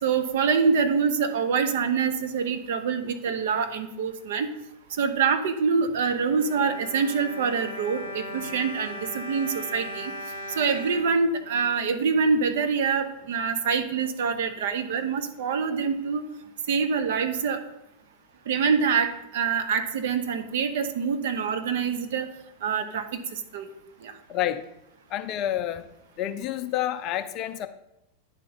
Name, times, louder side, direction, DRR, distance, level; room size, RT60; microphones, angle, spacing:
voice 1, 0.0-4.5 5.0-10.1 10.6-16.2 16.7-17.6 18.5-22.3 22.6-23.2 23.5-23.7 24.0-24.1, right 5 dB, 55° right, 8 dB, 0.8 m, -25 dB
Bowed string instrument, 5.8-12.1 12.8-12.9 13.2-13.3, left 1 dB, 75° right, 1.8 m, -38 dB
voice 2, 24.3-24.7 25.1-25.8 26.2-27.7, left 12 dB, 35° left, 9 dB, 0.5 m, -29 dB
9.9 x 3.7 x 5.4 m, 0.87 s
figure-of-eight pair, 90°, 0 cm